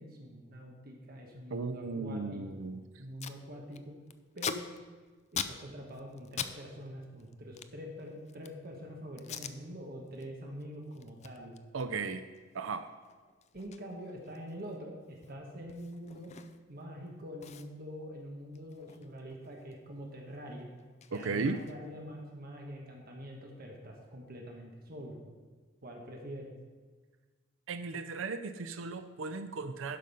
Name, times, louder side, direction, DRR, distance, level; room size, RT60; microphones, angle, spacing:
voice 1, 0.0-2.7 3.0-4.0 4.3-4.7 5.4-11.6 13.5-16.3 16.7-20.7 21.1-25.2 25.8-26.5, equal, 50° right, 0 dB, 1.3 m, -45 dB
voice 2, 1.5-2.8 11.7-12.2 12.5-12.8 21.1-21.6 27.7-30.0, right 4 dB, 70° right, 10 dB, 0.5 m, -36 dB
Packing tape duct tape, 2.7-2.8 2.9-3.4 3.7-6.6 6.8-8.7 9.2-9.6 10.0-10.3 10.6-16.8 17.1-17.2 17.4-19.8 20.1-22.0, left 7 dB, 35° left, 0.4 m, -44 dB
11.5 x 5.3 x 5.4 m, 1.4 s
head